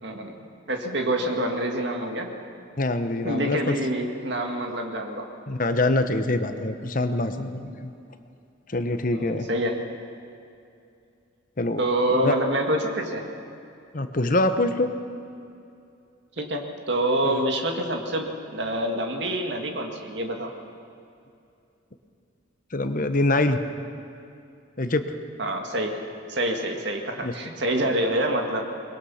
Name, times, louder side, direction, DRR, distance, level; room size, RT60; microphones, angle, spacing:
voice 1, 0.0-2.3 3.2-5.3 9.1-9.8 11.8-13.2 16.4-20.5 25.4-26.0 26.3-28.6, right 1 dB, 60° right, 3 dB, 2.1 m, -26 dB
voice 2, 2.8-3.7 5.5-7.9 8.7-9.5 11.6-11.8 12.2-12.4 13.9-14.9 17.2-17.4 22.7-23.6 24.8-25.0 27.2-27.3, left 2 dB, 45° left, 9 dB, 1.0 m, -24 dB
22.5 x 21.0 x 5.7 m, 2.6 s
head